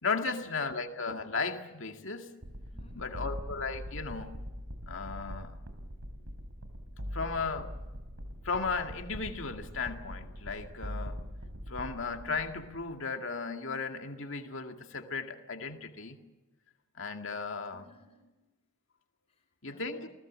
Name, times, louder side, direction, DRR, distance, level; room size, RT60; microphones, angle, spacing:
voice 1, 0.0-2.3 2.9-4.4 4.9-5.6 7.1-7.7 8.4-11.2 11.7-16.2 17.0-17.8 19.6-20.1, left 4 dB, 65° left, 2.2 m, -35 dB
sound 1, 2.4-12.8, equal, 85° right, 3.4 m, -42 dB
voice 2, 2.7-3.3 17.7-18.5 19.3-20.1, left 3 dB, 30° left, 5.2 m, -59 dB
30.0 x 19.0 x 7.6 m
head